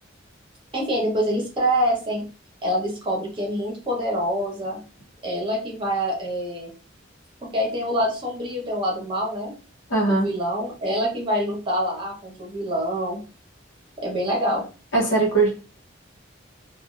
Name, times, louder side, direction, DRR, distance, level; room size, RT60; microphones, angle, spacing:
voice 1, 0.7-2.2 2.6-4.8 5.2-6.7 7.4-9.5 10.1-13.2 14.0-14.7, equal, 25° right, -3 dB, 0.9 m, -25 dB
voice 2, 9.9-10.3 14.9-15.5, right 3 dB, 70° left, -3 dB, 0.9 m, -20 dB
2.7 x 2.3 x 2.4 m, 0.35 s
head